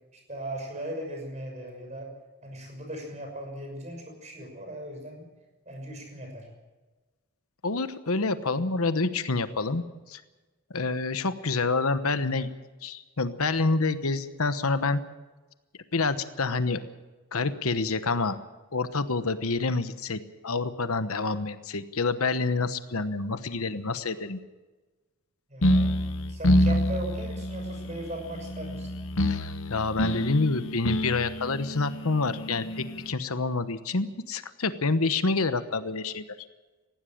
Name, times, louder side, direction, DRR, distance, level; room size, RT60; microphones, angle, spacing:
voice 1, 0.1-2.1 2.4-5.3 5.7-6.5 25.5-28.9, right 1 dB, 30° right, 3 dB, 6.1 m, -38 dB
voice 2, 7.6-9.8 10.1-10.2 10.7-12.5 12.8-15.0 15.9-16.8 17.3-18.4 18.7-24.4 29.3-36.2, left 3 dB, 75° left, 11 dB, 1.1 m, -27 dB
sound 1, 25.6-33.1, left 1 dB, 60° left, 1.1 m, -27 dB
19.5 x 15.5 x 8.8 m, 1.2 s
head